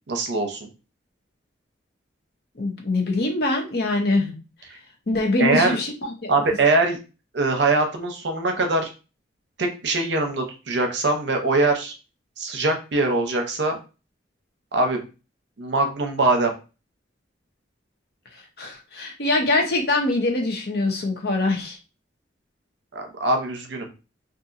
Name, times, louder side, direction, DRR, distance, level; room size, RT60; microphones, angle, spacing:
voice 1, 0.1-0.7 5.4-5.8 6.3-7.0 7.3-8.9 9.6-11.9 12.4-13.8 14.7-15.0 15.6-16.5 22.9-23.9, right 2 dB, 65° right, 3 dB, 0.6 m, -22 dB
voice 2, 2.6-4.3 5.1-6.5 18.6-21.8, left 2 dB, 55° left, 2 dB, 0.7 m, -23 dB
2.8 x 2.5 x 2.5 m, 0.32 s
head